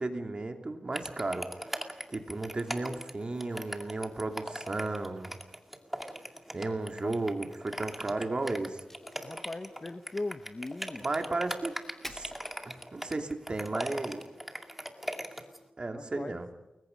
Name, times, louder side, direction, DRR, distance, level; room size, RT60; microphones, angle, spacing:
voice 1, 0.0-5.4 6.5-8.8 11.0-11.8 12.0-12.3 12.6-14.2 15.8-16.5, right 2 dB, 40° right, 5 dB, 3.0 m, -34 dB
sound 1, 0.9-15.6, equal, 5° right, 2.3 m, -39 dB
sound 2, 1.4-15.7, equal, 80° left, 4.4 m, -57 dB
Crack, 8.8-13.3, left 1 dB, 15° left, 3.4 m, -52 dB
voice 2, 9.2-11.1 15.9-16.4, left 2 dB, 30° left, 10 dB, 1.0 m, -39 dB
30.0 x 22.0 x 5.4 m, 1.0 s
wide cardioid pair, 95°, 3 cm